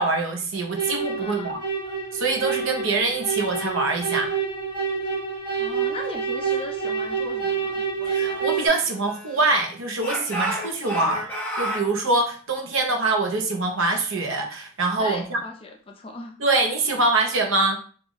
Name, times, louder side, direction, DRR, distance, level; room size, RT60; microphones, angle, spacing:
voice 1, 0.0-1.6 2.1-4.3 8.1-11.2 11.6-15.4 16.4-17.8, right 3 dB, 60° right, 3 dB, 0.7 m, -24 dB
sound 1, 0.8-8.7, right 6 dB, 20° right, 0.9 m, -28 dB
voice 2, 1.2-1.7 5.6-7.8 11.0-11.2 15.0-16.3, left 2 dB, 25° left, 2 dB, 0.4 m, -37 dB
Speech / Shout, 8.0-9.5 10.0-11.9, right 1 dB, 5° left, 0.8 m, -32 dB
3.8 x 2.4 x 3.0 m, 0.41 s
head